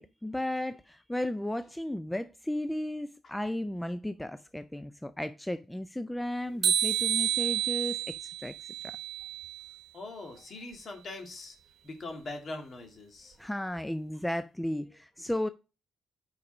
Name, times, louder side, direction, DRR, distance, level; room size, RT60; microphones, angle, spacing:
voice 1, 0.0-8.9 13.4-15.5, left 1 dB, 5° left, 0.4 m, -34 dB
sound 1, 6.6-9.7, right 9 dB, 75° right, 1.0 m, -30 dB
voice 2, 9.9-11.6 11.8-13.4, left 2 dB, 50° left, 2.0 m, -42 dB
5.4 x 4.9 x 5.9 m
cardioid pair, 90°, 0 cm